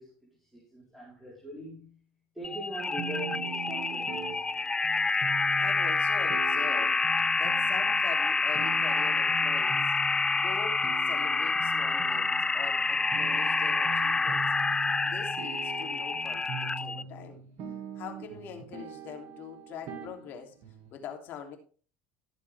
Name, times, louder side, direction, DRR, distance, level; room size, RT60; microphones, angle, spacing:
voice 1, 0.0-2.0 2.3-4.4, right 1 dB, 5° right, 4.3 m, -42 dB
sound 1, 2.4-17.0, left 4 dB, 15° left, 0.4 m, -28 dB
sound 2, 3.0-21.0, right 8 dB, 60° right, 2.2 m, -42 dB
voice 2, 5.6-7.0 7.4-9.9 10.4-14.4 15.0-17.4 17.9-20.5 20.9-21.6, left 7 dB, 55° left, 3.0 m, -43 dB
14.5 x 7.2 x 3.5 m
supercardioid pair, 100°, 4 cm